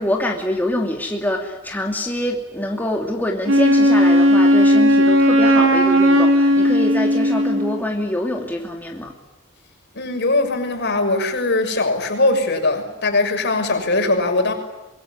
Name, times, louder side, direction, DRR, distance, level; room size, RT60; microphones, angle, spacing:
voice 1, 0.0-9.1, left 1 dB, 10° left, 1 dB, 2.7 m, -25 dB
Wind instrument woodwind instrument, 3.5-7.8, equal, 70° right, 2.8 m, -15 dB
voice 2, 9.9-14.5, left 2 dB, 60° left, 5 dB, 6.5 m, -20 dB
25.5 x 22.0 x 9.9 m, 1.0 s
head